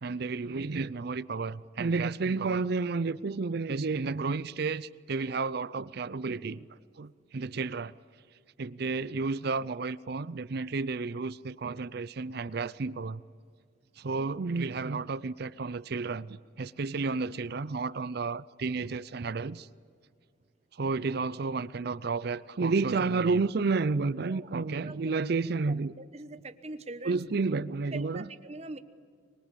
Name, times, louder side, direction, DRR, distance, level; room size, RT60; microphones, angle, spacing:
voice 1, 0.0-6.7 7.0-7.9 8.6-13.2 14.0-19.7 20.7-25.9 27.0-28.3, right 4 dB, 55° right, 0.5 m, -31 dB
voice 2, 24.8-25.2 25.7-25.8 26.1-27.2 27.9-28.8, right 2 dB, 35° right, 1.1 m, -42 dB
24.5 x 21.5 x 8.4 m
head